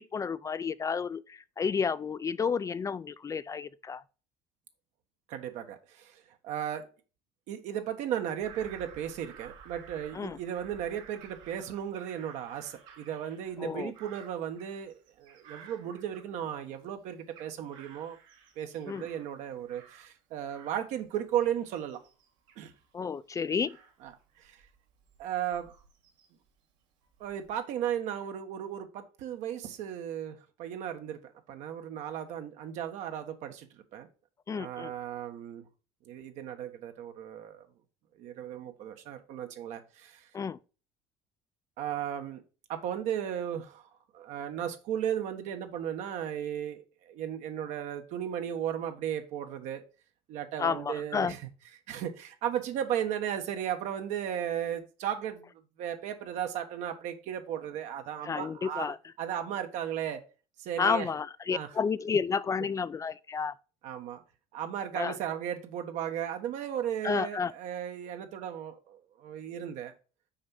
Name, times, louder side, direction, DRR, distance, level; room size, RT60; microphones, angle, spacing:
voice 1, 0.0-4.0 10.1-10.4 13.6-13.9 18.9-19.1 22.9-23.8 34.5-34.9 40.3-40.6 50.6-51.3 58.2-59.0 60.8-63.5 64.9-65.2 67.0-67.5, left 6 dB, 25° left, 0.4 m, -31 dB
voice 2, 5.3-6.9 7.5-18.2 18.6-22.0 22.6-22.7 24.0-24.1 24.4-24.6 25.2-25.7 27.2-31.2 31.5-33.7 33.9-34.1 34.5-35.7 36.1-37.7 38.2-40.2 41.8-42.4 42.7-43.9 44.1-46.8 47.1-49.8 50.3-51.4 51.9-55.5 55.8-60.2 60.6-61.1 61.5-61.7 63.8-64.2 64.5-69.9, right 9 dB, 70° right, 1.3 m, -35 dB
Bird vocalization bird call bird song / Crow, 8.4-16.7 17.1-20.2 20.5-26.5 27.0-27.6, right 6 dB, 85° right, 2.5 m, -55 dB
6.4 x 4.7 x 5.5 m
supercardioid pair, 105°, 13 cm